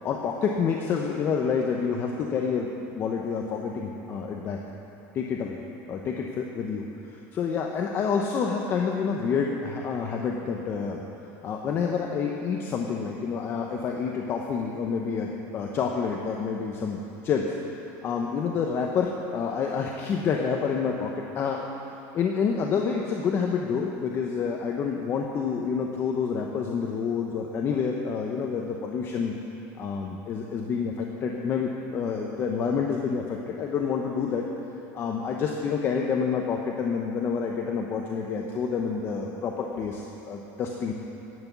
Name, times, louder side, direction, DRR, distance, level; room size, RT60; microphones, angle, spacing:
voice 1, 0.0-4.6 5.1-5.6 5.9-11.0 11.4-17.5 18.0-21.7 22.1-29.3 29.8-34.4 34.9-40.9, left 6 dB, 30° left, 1 dB, 0.8 m, -28 dB
11.0 x 8.3 x 8.1 m, 3.0 s
cardioid pair, 160°, 7 cm